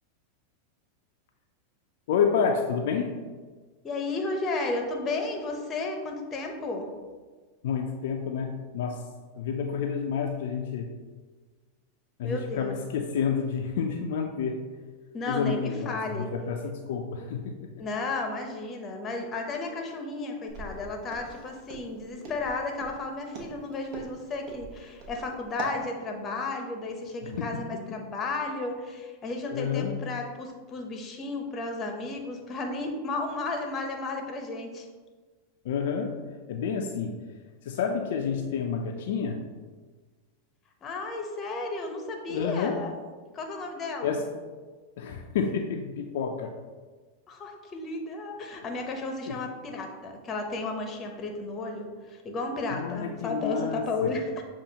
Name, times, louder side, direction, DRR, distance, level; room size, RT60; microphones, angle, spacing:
voice 1, 2.1-3.2 7.6-9.1 9.3-10.9 12.2-14.6 15.3-17.7 27.2-27.6 29.5-30.0 35.6-36.2 36.5-37.2 37.6-39.4 42.3-42.8 44.0-44.2 45.0-46.6 49.3-49.4 52.7-54.2, left 6 dB, 70° left, 2 dB, 0.4 m, -29 dB
voice 2, 3.8-6.9 12.2-12.8 15.1-16.3 17.8-34.9 40.8-42.9 43.3-44.2 47.3-54.4, left 3 dB, 30° left, 3 dB, 0.8 m, -33 dB
Walk footsteps, 20.5-25.8, right 2 dB, 50° right, 1.1 m, -40 dB
6.7 x 2.4 x 2.8 m, 1.4 s
hypercardioid pair, 105°, 0 cm